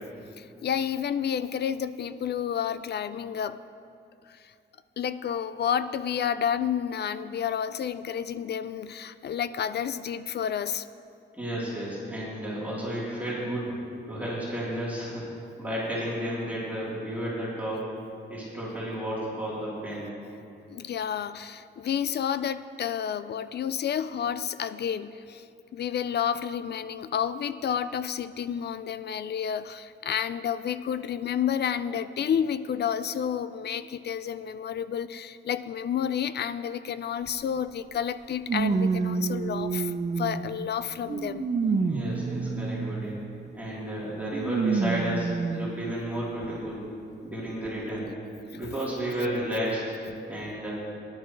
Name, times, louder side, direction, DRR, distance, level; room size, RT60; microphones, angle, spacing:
voice 1, 0.4-3.6 4.3-4.5 5.0-10.9 20.7-25.4 25.7-41.4, left 8 dB, 60° left, 13 dB, 0.4 m, -30 dB
voice 2, 11.3-13.8 14.1-17.9 18.3-20.1 41.8-43.2 43.5-46.8 47.2-48.1 48.5-50.0 50.3-50.7, right 1 dB, 10° right, -9 dB, 3.5 m, -32 dB
sound 1, 37.3-37.4 38.5-40.5 41.1-43.1 44.3-45.7 46.4-46.5 47.7-47.8, right 4 dB, 40° right, 0.7 m, -28 dB
22.0 x 11.5 x 3.2 m, 2.5 s
wide cardioid pair, 140°, 19 cm